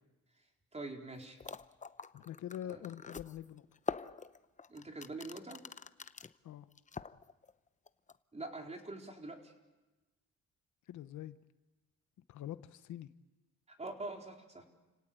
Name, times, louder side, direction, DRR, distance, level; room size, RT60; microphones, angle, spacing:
voice 1, 0.7-1.4 2.7-2.8 4.7-5.6 8.3-9.5 13.7-14.6, right 2 dB, 20° right, 2 dB, 4.2 m, -44 dB
sound 1, 1.1-1.2 1.4-6.3 6.7-7.5 7.9-8.2, left 5 dB, 25° left, 0.8 m, -44 dB
voice 2, 2.1-3.7 6.4-6.7 10.9-11.4 12.3-13.1, left 11 dB, 75° left, 12 dB, 1.1 m, -44 dB
30.0 x 17.5 x 9.1 m, 1.1 s
cardioid pair, 90°, 30 cm